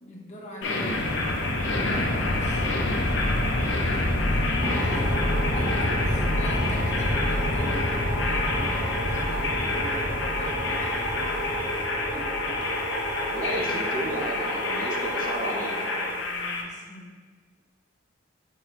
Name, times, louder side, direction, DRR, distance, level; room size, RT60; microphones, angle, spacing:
voice 1, 0.0-1.1 1.7-2.7 3.8-5.2 5.5-12.6 13.1-13.2 13.6-14.2 15.5-17.2, left 1 dB, 40° left, -3 dB, 1.0 m, -41 dB
sound 1, 0.6-16.6, left 2 dB, 75° left, 0.8 m, -27 dB
sound 2, 4.6-16.1, right 1 dB, 20° right, 0.9 m, -32 dB
voice 2, 13.3-15.8, right 1 dB, 45° right, 0 dB, 0.6 m, -33 dB
6.8 x 4.7 x 3.0 m, 1.4 s
head